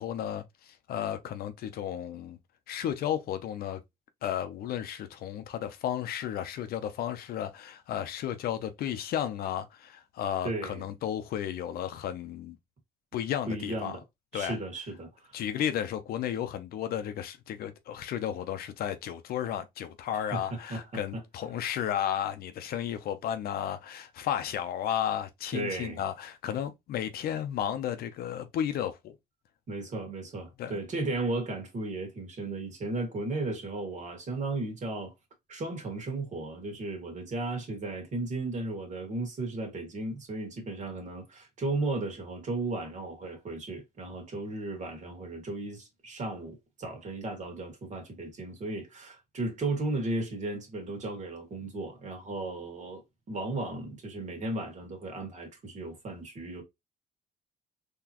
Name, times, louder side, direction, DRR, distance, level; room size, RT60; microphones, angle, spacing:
voice 1, 0.0-2.4 2.7-3.8 4.2-12.6 13.1-14.0 14.3-14.6 15.3-29.2 30.6-30.8, left 10 dB, 65° left, 0.6 m, -33 dB
voice 2, 10.4-10.9 13.5-14.0 14.3-15.4 20.3-21.2 25.5-26.0 29.7-35.1 35.5-53.0 53.3-56.6, right 2 dB, 45° right, 1.9 m, -35 dB
3.9 x 3.0 x 2.9 m
cardioid pair, 110°, 17 cm